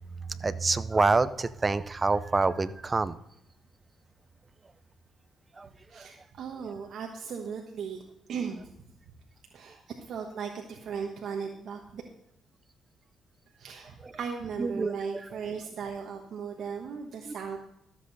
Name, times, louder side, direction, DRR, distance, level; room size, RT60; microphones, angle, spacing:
voice 1, 0.4-3.2 5.6-5.7 5.9-6.1 14.0-14.1 14.6-15.0 17.2-17.3, right 3 dB, 25° right, 15 dB, 0.6 m, -27 dB
voice 2, 5.9-8.0 8.3-8.7 9.5-12.0 13.5-17.6, right 6 dB, 65° right, 2 dB, 1.2 m, -37 dB
13.5 x 7.6 x 4.0 m, 0.80 s
cardioid pair, 90°, 0 cm